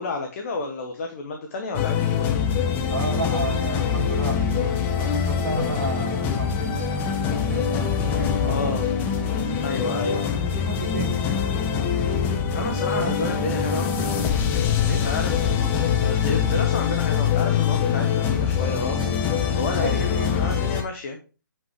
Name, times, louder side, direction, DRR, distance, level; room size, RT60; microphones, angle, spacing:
voice 1, 0.0-2.3 8.4-8.9 9.6-10.2 12.4-13.9 14.8-19.0 19.5-21.2, left 3 dB, 40° left, 4 dB, 1.4 m, -31 dB
sound 1, 1.7-20.8, left 7 dB, 20° left, 1.2 m, -24 dB
voice 2, 2.9-8.8 10.1-11.5 12.5-13.5 14.8-15.1 19.8-20.4, right 3 dB, 55° right, -2 dB, 1.8 m, -33 dB
7.6 x 5.7 x 4.8 m, 0.33 s
figure-of-eight pair, 140°, 11 cm